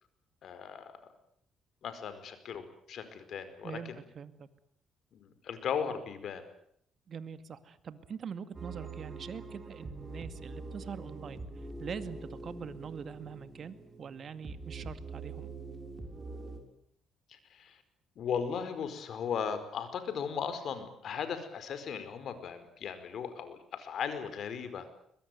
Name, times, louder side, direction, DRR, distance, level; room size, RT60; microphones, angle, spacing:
voice 1, 0.4-1.0 1.8-4.0 5.1-6.4 17.3-17.8 18.2-24.9, left 7 dB, 65° left, 11 dB, 4.8 m, -37 dB
voice 2, 3.6-4.5 7.1-15.5, right 7 dB, 55° right, 11 dB, 2.2 m, -43 dB
sound 1, 8.5-16.6, right 3 dB, 30° right, 6.5 m, -44 dB
23.0 x 21.0 x 9.5 m, 0.69 s
cardioid pair, 90°, 0 cm